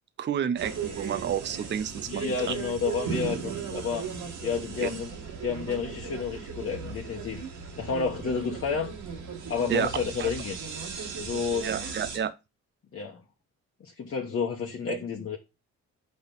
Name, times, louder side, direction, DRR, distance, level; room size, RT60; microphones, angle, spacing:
voice 1, 0.2-2.5 4.8-4.9 9.7-9.9 10.2-10.3 11.6-12.3 14.9-15.0, right 8 dB, 40° right, 0.6 m, -30 dB
sound 1, 0.6-12.2, right 6 dB, 75° right, 1.9 m, -37 dB
voice 2, 2.1-4.1 4.4-5.2 5.4-7.4 7.8-8.9 9.5-10.6 11.2-11.7 12.9-13.2 13.8-15.4, left 5 dB, 45° left, 1.2 m, -30 dB
5.9 x 5.3 x 5.3 m
cardioid pair, 90°, 30 cm